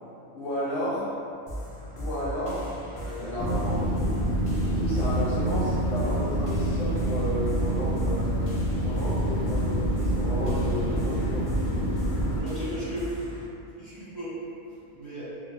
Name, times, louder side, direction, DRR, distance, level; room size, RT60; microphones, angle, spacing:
voice 1, 0.3-1.1 2.0-2.7 2.9-4.2 4.6-8.3 8.7-11.4, equal, 65° left, -10 dB, 1.3 m, -32 dB
sound 1, 1.5-13.5, equal, 50° left, 0.4 m, -37 dB
sound 2, 3.4-12.4, right 1 dB, 90° left, 1.0 m, -27 dB
voice 2, 12.4-13.1 13.8-14.4 14.7-15.3, equal, 15° right, -14 dB, 0.8 m, -35 dB
3.0 x 2.0 x 3.3 m, 2.6 s
omnidirectional pair, 1.4 m